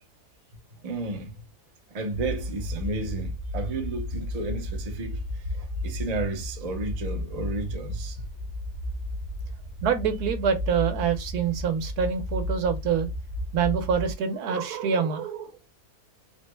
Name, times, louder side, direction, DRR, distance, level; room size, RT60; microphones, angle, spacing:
voice 1, 0.8-1.3 1.9-5.2 5.5-8.2, right 2 dB, 50° right, 0.4 m, -32 dB
sound 1, 2.1-14.1, left 1 dB, 65° left, 1.2 m, -33 dB
voice 2, 9.8-13.1 13.5-15.5, right 7 dB, 75° right, 1.2 m, -26 dB
3.9 x 2.1 x 3.2 m
omnidirectional pair, 1.7 m